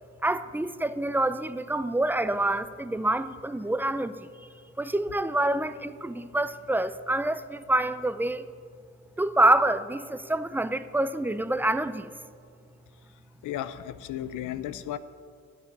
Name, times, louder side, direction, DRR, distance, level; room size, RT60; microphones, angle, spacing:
voice 1, 0.2-4.3 4.8-8.5 9.2-12.1, right 1 dB, 5° right, 0.5 m, -26 dB
voice 2, 13.4-15.0, left 11 dB, 90° left, 0.6 m, -34 dB
10.5 x 8.4 x 9.6 m
cardioid pair, 90°, 30 cm